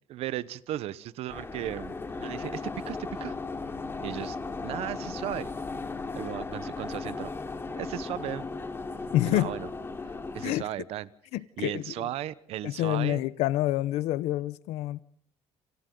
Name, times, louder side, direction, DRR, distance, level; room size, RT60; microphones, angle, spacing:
voice 1, 0.1-3.4 4.0-4.4 4.6-5.5 6.1-7.3 7.7-8.4 9.2-9.7 10.0-11.1 11.6-13.2, right 13 dB, 70° right, 1.0 m, -36 dB
sound 1, 1.3-10.5, left 3 dB, 20° left, 3.6 m, -36 dB
voice 2, 9.1-9.5 10.4-10.6 11.3-12.1 12.6-15.0, left 15 dB, 90° left, 0.8 m, -27 dB
28.0 x 27.5 x 3.9 m
cardioid pair, 120°, 11 cm